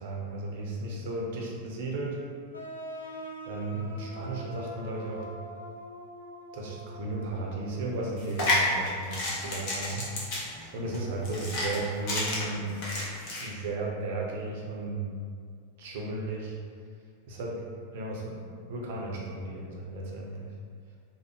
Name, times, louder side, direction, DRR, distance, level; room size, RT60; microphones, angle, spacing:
voice 1, 0.0-2.2 3.4-5.2 6.5-10.1 10.7-12.8 13.4-15.1 15.8-16.6 17.3-17.6 17.9-18.4 18.7-20.5, right 2 dB, 50° right, -2 dB, 0.6 m, -34 dB
sound 1, 2.5-8.0, right 1 dB, 80° left, 0.4 m, -43 dB
sound 2, 8.2-13.5, left 2 dB, 45° left, 0.8 m, -31 dB
3.3 x 2.1 x 3.0 m, 2.1 s
figure-of-eight pair, 90°, 0 cm